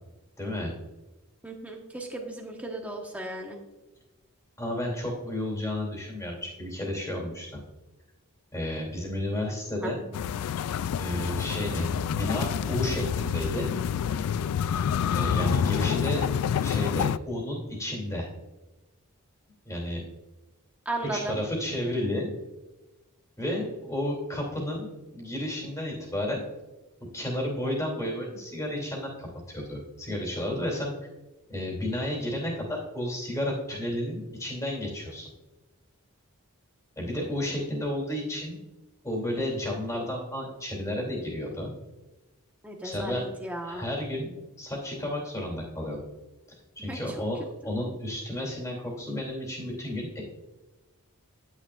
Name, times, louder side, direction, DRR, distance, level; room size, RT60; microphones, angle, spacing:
voice 1, 0.4-0.7 4.6-7.5 8.5-10.1 11.0-13.7 15.1-16.2 16.6-18.3 19.6-20.0 21.1-22.3 23.4-26.4 27.1-30.9 31.5-35.3 37.0-38.6 39.0-41.7 42.8-43.2 43.6-46.0 46.7-50.2, left 1 dB, 15° left, -1 dB, 2.8 m, -32 dB
voice 2, 1.4-3.6 9.8-9.9 20.8-21.4 42.6-43.9 46.9-47.2, right 1 dB, 5° right, 1 dB, 1.2 m, -35 dB
sound 1, 10.1-17.2, left 8 dB, 85° left, 0.3 m, -28 dB
11.0 x 9.8 x 2.5 m, 1.1 s
head